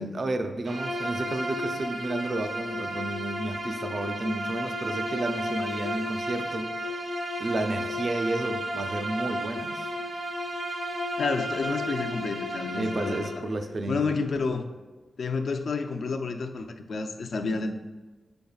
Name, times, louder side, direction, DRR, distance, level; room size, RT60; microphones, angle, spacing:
voice 1, 0.0-6.9 7.4-10.2 12.7-14.1, right 2 dB, 50° right, 7 dB, 0.5 m, -32 dB
Bowed string instrument, 0.6-13.4, equal, 70° right, 1.6 m, -33 dB
voice 2, 11.2-13.3 13.9-14.7 15.2-17.8, left 4 dB, 70° left, 5 dB, 0.5 m, -30 dB
8.4 x 5.2 x 2.3 m, 1.2 s
wide cardioid pair, 95°, 0 cm